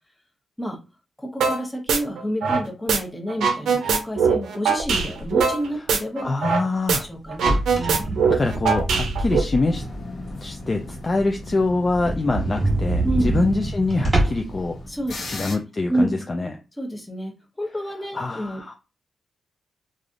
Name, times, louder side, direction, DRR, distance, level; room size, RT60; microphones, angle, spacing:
voice 1, 1.2-6.3 7.1-8.1 13.0-13.3 14.9-15.3 15.9-16.1 16.8-18.7, right 1 dB, 10° left, 1 dB, 0.9 m, -29 dB
sound 1, 1.4-1.6 1.9-3.0 3.3-6.6 6.9-7.0 7.3-9.4, right 5 dB, 85° right, 0.5 m, -21 dB
voice 2, 6.2-7.1 8.3-9.8 10.4-14.8 15.3-16.5 18.1-18.7, left 3 dB, 30° left, 3 dB, 0.3 m, -24 dB
sound 2, 7.3-9.9 10.3-10.4 10.8-10.9 11.2-11.3 11.5-11.6 11.9-14.6, right 2 dB, 25° right, 1.3 m, -25 dB
sound 3, 9.7-15.6, left 1 dB, 60° left, 1.0 m, -37 dB
3.3 x 2.5 x 2.4 m, 0.29 s
cardioid pair, 115°, 0 cm